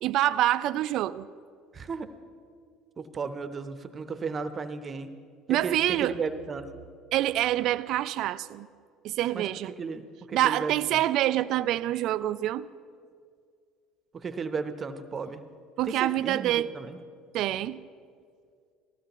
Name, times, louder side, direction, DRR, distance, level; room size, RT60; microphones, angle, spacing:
voice 1, 0.0-1.3 5.5-6.1 7.1-8.7 9.0-9.7 10.3-12.7 15.8-16.7 17.3-17.8, right 13 dB, 60° right, 0.3 m, -26 dB
voice 2, 1.7-2.1 3.0-5.1 5.5-6.7 9.3-11.0 14.1-15.4 15.8-17.0, right 5 dB, 35° right, 0.7 m, -35 dB
18.5 x 15.0 x 3.0 m
hypercardioid pair, 70°, 0 cm